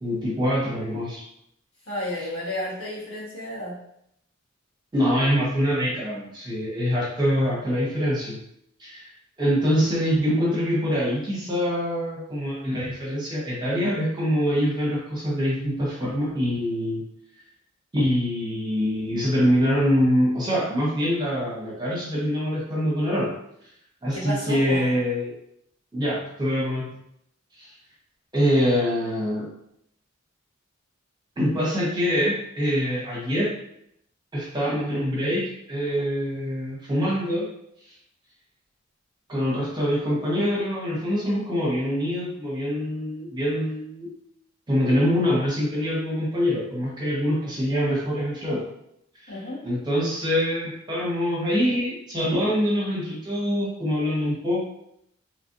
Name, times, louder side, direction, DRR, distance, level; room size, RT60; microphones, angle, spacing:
voice 1, 0.0-1.2 4.9-8.4 8.8-9.1 9.4-17.0 17.9-23.3 24.0-25.3 25.9-26.9 27.6-27.7 28.3-29.5 31.4-33.5 34.3-37.5 37.8-37.9 39.3-44.1 44.7-48.6 49.1-54.6, equal, 20° right, -6 dB, 0.8 m, -24 dB
voice 2, 1.9-3.8 24.1-24.9 49.3-49.6, left 1 dB, 85° left, -8 dB, 1.5 m, -31 dB
3.1 x 2.5 x 2.6 m, 0.76 s
head